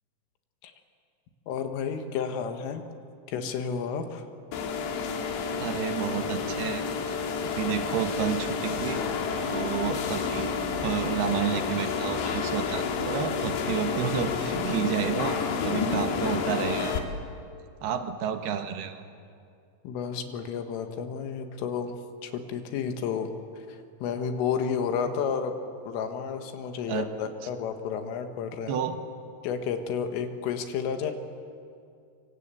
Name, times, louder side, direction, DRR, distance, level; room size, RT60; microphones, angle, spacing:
voice 1, 1.5-2.8 3.3-4.3 19.8-22.0 22.2-23.3 23.6-25.6 25.9-28.8 29.4-31.1, left 7 dB, 90° left, 6 dB, 4.2 m, -31 dB
sound 1, 4.5-17.0, left 5 dB, 65° left, 3.9 m, -30 dB
voice 2, 5.6-7.2 7.6-9.0 9.5-15.4 15.6-17.0 17.8-19.0 26.9-27.1 28.7-29.0, right 8 dB, 65° right, 7 dB, 2.8 m, -30 dB
26.0 x 25.0 x 8.5 m, 2.4 s
omnidirectional pair, 5.7 m